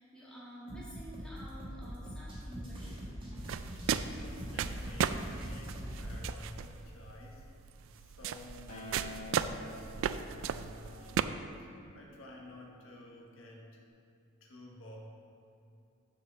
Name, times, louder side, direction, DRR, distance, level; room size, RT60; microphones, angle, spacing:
voice 1, 0.0-3.0, right 1 dB, 5° left, -9 dB, 2.0 m, -49 dB
sound 1, 0.7-6.3, equal, 25° right, 1.5 m, -43 dB
sound 2, 3.4-11.2, right 8 dB, 70° right, 0.3 m, -36 dB
voice 2, 4.2-7.5 7.9-11.3 11.6-13.8 14.4-15.0, left 1 dB, 80° left, -2 dB, 1.2 m, -52 dB
Acoustic guitar, 8.7-13.0 13.8-13.9, left 1 dB, 45° left, 1.2 m, -50 dB
7.0 x 5.0 x 6.6 m, 2.6 s
head